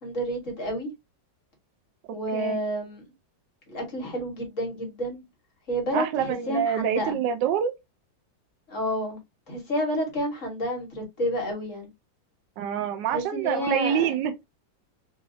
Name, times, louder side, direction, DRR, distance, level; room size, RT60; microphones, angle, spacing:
voice 1, 0.0-0.9 2.1-3.0 3.7-5.2 5.7-7.2 8.7-9.2 9.5-11.9 13.1-14.1, equal, 45° left, 1.7 m, -30 dB
voice 2, 5.9-7.7 12.6-14.3, right 9 dB, 80° right, 1.3 m, -26 dB
4.0 x 2.6 x 2.7 m
omnidirectional pair, 2.0 m